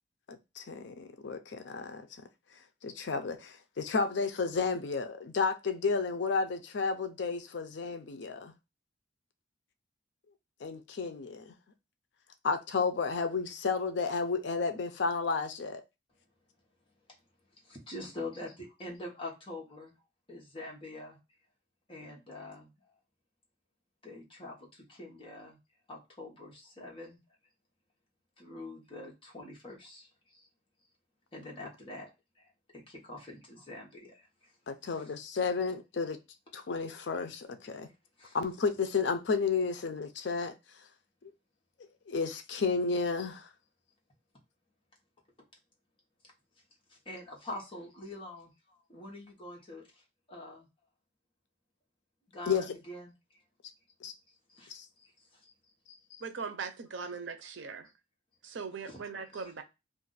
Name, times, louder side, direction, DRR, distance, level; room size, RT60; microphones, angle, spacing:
voice 1, 0.3-2.1 2.8-8.5 10.6-11.5 12.4-15.8 34.7-36.2 36.5-37.9 38.3-40.5 42.1-43.5 52.5-52.6 54.0-54.1 54.7-54.9 56.1-56.2, left 4 dB, 70° left, 0.5 m, -32 dB
voice 2, 17.6-20.0 20.3-21.2 21.9-22.7 24.0-25.6 25.9-27.2 28.4-30.5 31.3-32.1 32.7-34.3 34.9-35.1 38.2-38.4 47.0-50.0 50.3-50.7 52.3-53.1 54.5-55.1 55.4-55.5 55.9-56.0 58.9-59.6, left 2 dB, 30° left, 1.0 m, -45 dB
voice 3, 56.2-57.9 58.4-59.6, right 5 dB, 80° right, 0.5 m, -40 dB
2.5 x 2.5 x 3.9 m
head